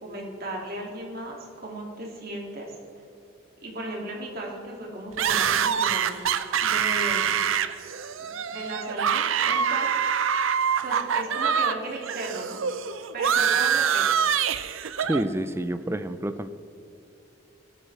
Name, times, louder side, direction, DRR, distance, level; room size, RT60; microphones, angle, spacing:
voice 1, 0.0-2.8 3.6-6.1 6.6-7.3 8.2-10.0 10.8-12.6 13.1-14.2, right 1 dB, 45° right, -2 dB, 2.4 m, -36 dB
sound 1, 5.2-11.8 12.0-15.2, right 7 dB, 75° right, 0.6 m, -25 dB
voice 2, 15.1-16.5, right 1 dB, 10° right, 11 dB, 0.4 m, -28 dB
17.0 x 11.5 x 3.3 m, 2.9 s
head